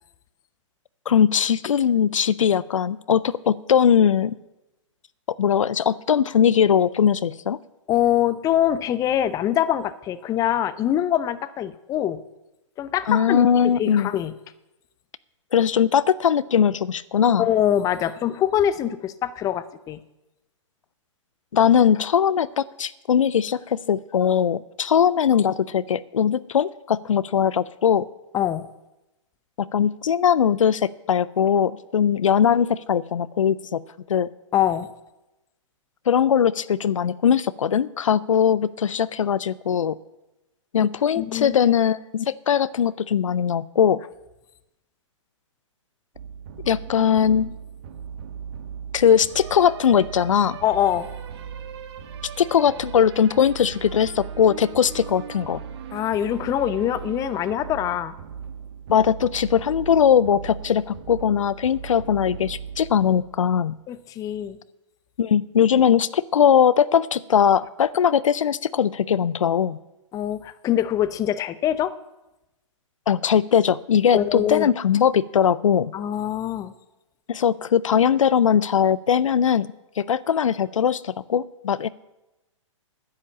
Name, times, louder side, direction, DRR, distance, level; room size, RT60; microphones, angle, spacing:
voice 1, 1.1-4.4 5.3-7.6 13.1-14.1 15.5-17.5 21.5-28.1 29.6-33.8 34.1-34.3 36.1-40.0 40.7-44.1 46.6-47.5 48.9-50.6 52.4-55.6 58.9-63.7 65.2-69.8 73.1-75.9 77.3-79.7 80.0-81.9, left 8 dB, 75° left, 18 dB, 0.5 m, -20 dB
voice 2, 7.9-12.2 12.8-14.3 17.4-20.0 28.3-28.7 34.5-34.9 41.2-41.6 50.6-51.1 55.9-58.1 63.9-64.6 70.1-71.9 74.1-74.7 75.9-76.7, left 11 dB, 20° left, 14 dB, 0.6 m, -24 dB
sound 1, 46.1-63.7, right 7 dB, 55° right, 1.4 m, -38 dB
10.0 x 9.8 x 7.2 m, 0.97 s
hypercardioid pair, 120°, 17 cm